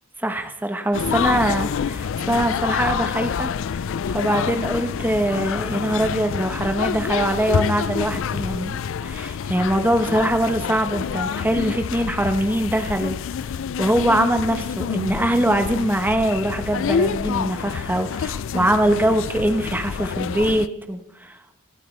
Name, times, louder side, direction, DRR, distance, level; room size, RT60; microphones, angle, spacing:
voice 1, 0.2-3.5 4.1-13.2 13.8-21.4, right 1 dB, 10° right, 6 dB, 1.1 m, -22 dB
sound 1, 0.9-20.7, left 7 dB, 60° left, 0.4 m, -27 dB
25.0 x 8.5 x 3.3 m, 0.92 s
head